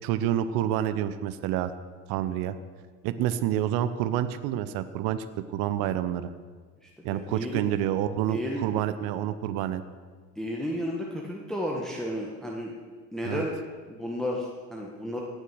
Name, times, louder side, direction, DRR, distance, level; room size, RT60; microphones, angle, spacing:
voice 1, 0.0-1.7 2.1-2.6 3.0-5.2 5.5-6.3 7.0-9.8 13.2-13.4, right 11 dB, 45° right, 12 dB, 0.8 m, -28 dB
voice 2, 6.8-7.6 8.3-8.6 10.4-12.7 13.1-13.6 13.9-15.2, equal, ahead, -2 dB, 1.5 m, -33 dB
17.0 x 6.5 x 6.4 m, 1.5 s
figure-of-eight pair, 80°, 49 cm